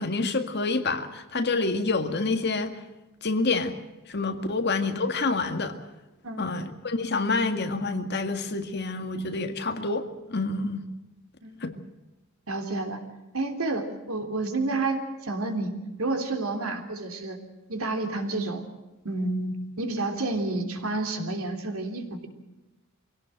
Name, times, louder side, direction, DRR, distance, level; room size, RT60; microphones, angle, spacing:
voice 1, 0.0-2.7 3.2-3.7 4.1-5.8 6.4-10.8 11.6-11.7, left 3 dB, 50° left, 6 dB, 1.9 m, -27 dB
voice 2, 12.5-13.0 13.3-15.7 16.0-17.4 17.7-18.6 19.0-22.3, right 2 dB, 85° right, 5 dB, 3.3 m, -30 dB
24.5 x 17.5 x 7.7 m, 1.1 s
head